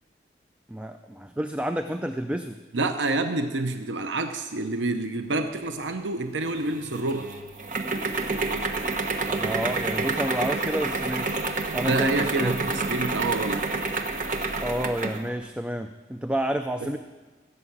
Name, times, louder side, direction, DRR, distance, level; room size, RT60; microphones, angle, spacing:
voice 1, 0.7-2.6 9.3-11.4 11.7-12.5 14.6-17.0, right 1 dB, 5° right, 7 dB, 0.4 m, -30 dB
voice 2, 2.7-7.3 11.8-13.6 16.8-16.9, right 2 dB, 85° right, 7 dB, 0.8 m, -28 dB
sound 1, 6.4-15.3, right 3 dB, 45° right, 1.0 m, -29 dB
16.0 x 7.0 x 8.5 m, 1.3 s
head